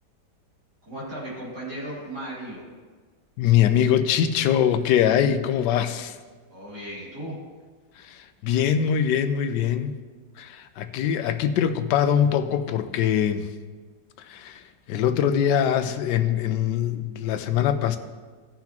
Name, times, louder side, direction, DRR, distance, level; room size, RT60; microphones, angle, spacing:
voice 1, 0.8-2.7 6.5-7.4, right 1 dB, 65° right, -8 dB, 3.3 m, -36 dB
voice 2, 3.4-6.2 8.0-9.9 10.4-13.5 14.3-14.6 14.9-18.0, left 9 dB, 80° left, 10 dB, 1.2 m, -23 dB
16.5 x 5.9 x 2.9 m, 1.5 s
omnidirectional pair, 1.8 m